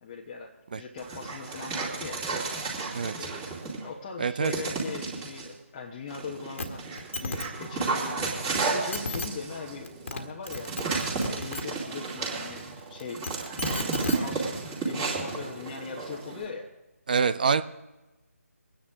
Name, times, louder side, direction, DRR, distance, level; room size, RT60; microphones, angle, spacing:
voice 1, 0.0-2.2 3.1-3.5 3.8-14.5 14.8-16.7, left 5 dB, 20° left, -2 dB, 1.2 m, -40 dB
Dog, 1.0-3.9 4.4-5.5 6.1-16.5, right 4 dB, 15° right, 2.7 m, -33 dB
voice 2, 4.2-4.5 17.1-17.6, right 5 dB, 35° right, 12 dB, 0.5 m, -25 dB
sound 1, 6.6-6.7 7.0-7.5 8.6-8.7 8.9-9.3 9.9-10.2 10.5-11.6 13.0-14.2 15.2-15.3, left 3 dB, 55° left, 1.7 m, -33 dB
24.0 x 9.8 x 3.6 m, 1.1 s
figure-of-eight pair, 155°, 8 cm